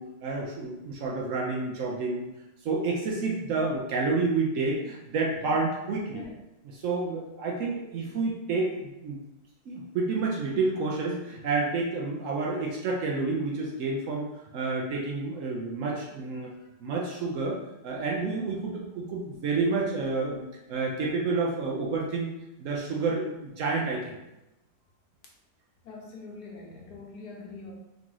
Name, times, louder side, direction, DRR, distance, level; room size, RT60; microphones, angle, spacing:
voice 1, 0.0-2.3 2.6-6.2 6.8-9.2 9.7-14.3 14.5-16.5 16.8-20.4 20.7-22.3 22.6-24.2, right 3 dB, 90° right, -2 dB, 0.6 m, -29 dB
voice 2, 16.4-16.7 25.8-27.7, left 3 dB, 65° left, -1 dB, 1.2 m, -44 dB
3.7 x 3.0 x 3.7 m, 0.95 s
omnidirectional pair, 2.1 m